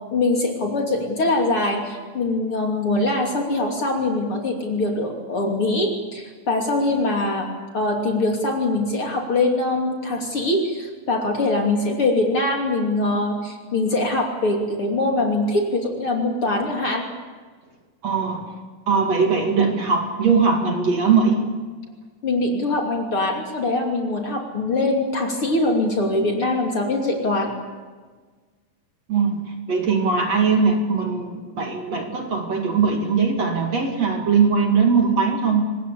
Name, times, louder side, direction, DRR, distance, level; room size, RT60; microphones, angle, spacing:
voice 1, 0.1-7.5 7.7-17.0 22.2-27.5, left 2 dB, 40° left, 1 dB, 3.4 m, -23 dB
voice 2, 18.0-18.5 18.9-21.4 29.1-35.6, right 5 dB, 50° right, 3 dB, 3.1 m, -20 dB
24.5 x 20.0 x 8.4 m, 1.4 s
omnidirectional pair, 4.3 m